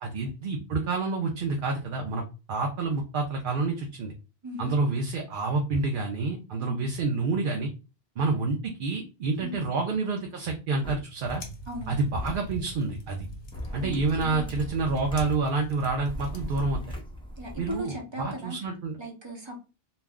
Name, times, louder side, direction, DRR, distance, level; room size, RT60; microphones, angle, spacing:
voice 1, 0.0-4.1 4.6-7.7 8.2-11.4 11.9-13.3 13.7-16.8 17.6-19.0, right 3 dB, 60° right, 2 dB, 0.7 m, -28 dB
voice 2, 4.4-4.7 6.6-6.8 9.4-9.6 11.7-12.0 13.8-13.9 14.2-14.5 17.4-18.6 19.0-19.5, equal, 30° right, -1 dB, 0.8 m, -37 dB
sound 1, 10.8-10.9 12.2-12.4 13.5-15.4 16.0-17.8, equal, 5° left, 0.6 m, -37 dB
sound 2, 11.2-16.7, equal, 65° left, 0.8 m, -43 dB
2.4 x 2.1 x 3.4 m, 0.31 s
omnidirectional pair, 1.0 m